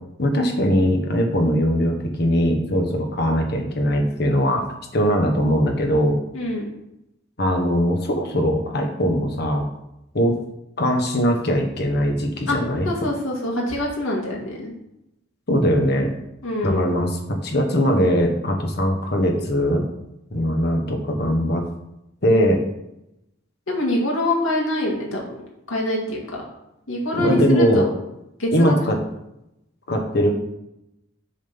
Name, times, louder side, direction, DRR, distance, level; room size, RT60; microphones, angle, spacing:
voice 1, 0.2-4.6 4.9-6.2 7.4-9.7 10.1-10.3 10.8-12.9 15.5-16.1 16.6-19.9 20.3-21.6 22.2-22.6 27.1-27.9 28.5-29.0 29.9-30.3, equal, 55° left, 2 dB, 1.3 m, -20 dB
voice 2, 6.3-6.7 12.4-12.6 12.8-14.7 16.4-16.9 23.7-25.4 25.7-26.4 26.9-27.9 28.4-28.8, left 1 dB, 85° left, -2 dB, 2.1 m, -25 dB
7.2 x 3.6 x 6.0 m, 0.85 s
head